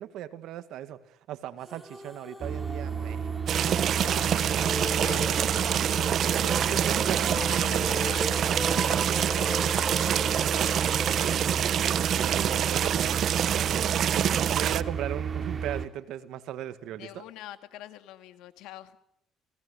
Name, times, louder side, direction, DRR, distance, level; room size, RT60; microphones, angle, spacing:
voice 1, 0.0-3.3 6.4-7.4 10.0-11.8 12.1-17.2, right 12 dB, 75° right, 11 dB, 1.9 m, -38 dB
sound 1, 1.7-12.6, equal, 5° right, 1.9 m, -38 dB
sound 2, 2.4-15.9, right 6 dB, 35° right, 2.6 m, -33 dB
sound 3, 3.5-14.8, right 9 dB, 60° right, 1.0 m, -26 dB
voice 2, 3.6-6.5 7.1-9.7 17.0-19.0, left 13 dB, 85° left, 10 dB, 2.1 m, -45 dB
29.0 x 19.0 x 8.6 m, 0.74 s
cardioid pair, 100°, 0 cm